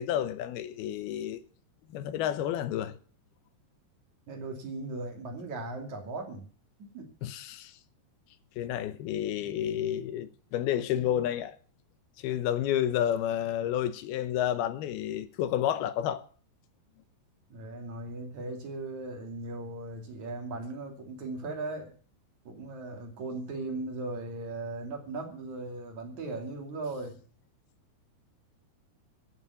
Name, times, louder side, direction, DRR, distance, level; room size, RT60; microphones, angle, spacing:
voice 1, 0.0-1.4 1.9-2.9 7.2-7.7 8.6-11.6 12.2-16.2, left 11 dB, 80° left, 2.8 m, -30 dB
voice 2, 4.3-6.5 6.8-7.1 17.5-21.9 22.5-27.2, right 2 dB, 50° right, 3.7 m, -38 dB
14.0 x 7.2 x 9.6 m
omnidirectional pair, 4.5 m